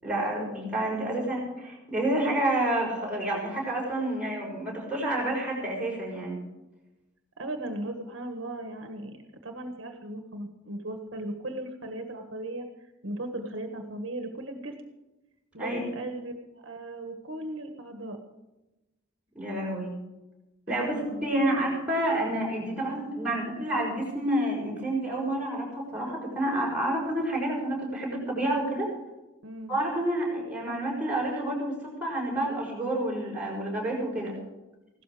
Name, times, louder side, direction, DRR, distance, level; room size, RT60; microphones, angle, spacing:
voice 1, 0.0-6.4 15.6-15.8 19.3-19.9 20.7-20.9 21.2-28.9 29.7-34.4, right 1 dB, 5° right, -4 dB, 6.1 m, -29 dB
voice 2, 0.9-1.3 7.4-12.7 13.0-14.8 15.5-16.3 16.6-18.2 20.7-21.3 29.4-29.8, right 1 dB, 65° right, 5 dB, 1.6 m, -37 dB
16.5 x 13.0 x 5.0 m, 1.0 s
head